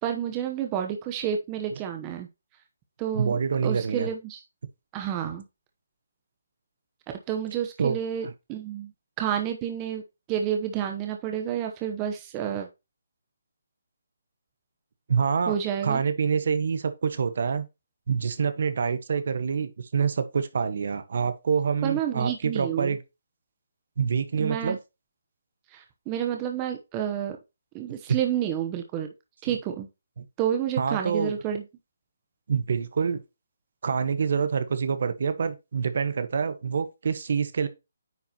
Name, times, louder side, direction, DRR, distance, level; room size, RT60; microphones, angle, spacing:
voice 1, 0.0-2.3 3.0-3.4 3.6-4.4 4.9-5.4 7.3-8.9 9.2-10.0 10.3-12.7 15.5-16.0 21.8-23.0 24.4-24.8 25.7-27.4 27.7-29.1 29.4-29.9 30.4-31.6, right 9 dB, 20° right, 0.9 m, -29 dB
voice 2, 3.1-4.1 7.8-8.0 8.2-8.3 15.1-15.5 15.8-17.7 18.1-23.0 24.0-24.8 29.5-29.6 30.2-30.3 30.8-31.3 32.5-33.2 33.8-37.7, right 6 dB, 55° right, 1.2 m, -26 dB
9.4 x 4.7 x 2.9 m
hypercardioid pair, 165°, 0 cm